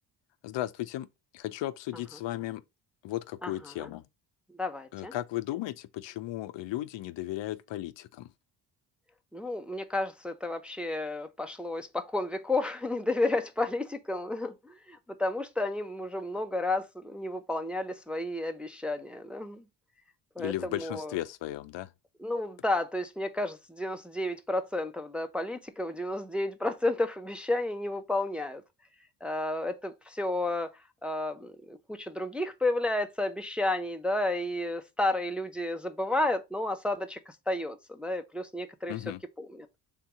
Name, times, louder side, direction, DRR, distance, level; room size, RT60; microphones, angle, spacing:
voice 1, 0.4-1.1 1.3-2.6 3.0-4.0 4.9-8.3 20.4-21.9 38.9-39.2, left 15 dB, 65° left, 0.5 m, -35 dB
voice 2, 3.4-3.9 4.6-5.1 9.3-19.6 20.4-21.2 22.2-28.6 29.2-30.7 31.0-38.9 39.4-39.7, left 2 dB, ahead, 0.5 m, -32 dB
3.5 x 2.8 x 4.7 m
supercardioid pair, 60°, 48 cm